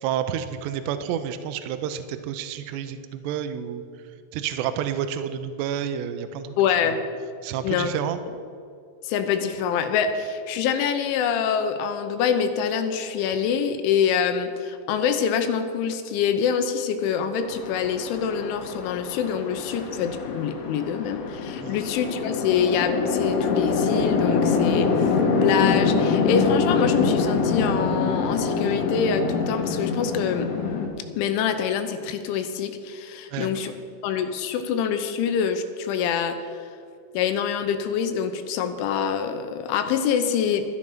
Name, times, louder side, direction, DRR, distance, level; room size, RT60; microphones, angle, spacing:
voice 1, 0.0-3.8 4.3-6.6 6.8-6.9 7.4-8.2 21.6-21.8 33.3-33.7, right 9 dB, 80° right, 9 dB, 2.7 m, -30 dB
voice 2, 6.6-7.0 7.6-7.9 9.0-25.1 25.4-30.5 31.2-33.8 34.0-36.4 37.1-40.6, left 7 dB, 85° left, 8 dB, 3.3 m, -25 dB
Chatter / Traffic noise roadway noise / Train, 17.4-30.9, left 5 dB, 65° left, 2.6 m, -25 dB
12.0 x 11.0 x 5.9 m, 2.3 s
omnidirectional pair, 5.4 m